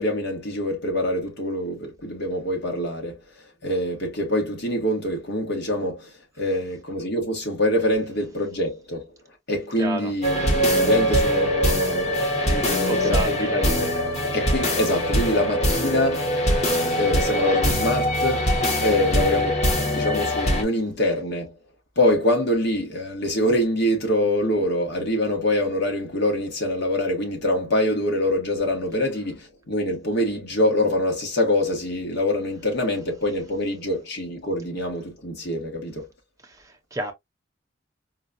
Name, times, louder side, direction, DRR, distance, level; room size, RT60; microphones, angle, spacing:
voice 1, 0.0-3.2 3.6-9.1 9.5-13.9 14.3-16.3 17.0-19.6 19.9-21.5 21.9-36.1, left 1 dB, 60° left, 1.5 m, -25 dB
voice 2, 9.8-10.1 10.7-10.9 12.7-13.8 36.4-37.1, right 1 dB, 15° right, 0.8 m, -32 dB
sound 1, 10.2-20.6, equal, 35° left, 1.1 m, -22 dB
4.4 x 2.3 x 2.5 m
head